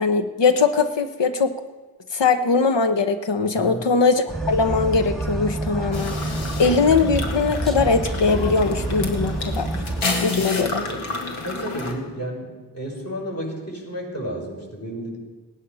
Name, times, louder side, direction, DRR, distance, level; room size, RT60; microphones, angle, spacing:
voice 1, 0.0-1.5 2.1-6.2 6.6-9.7 10.2-10.8, left 4 dB, 60° left, 8 dB, 1.3 m, -20 dB
sound 1, 4.3-10.0, right 1 dB, ahead, 2.1 m, -27 dB
sound 2, 5.9-11.9, left 3 dB, 80° left, 2.0 m, -30 dB
voice 2, 10.5-11.0 11.4-15.2, equal, 30° left, -2 dB, 6.3 m, -32 dB
18.0 x 10.0 x 5.7 m, 1.3 s
cardioid pair, 45°, 49 cm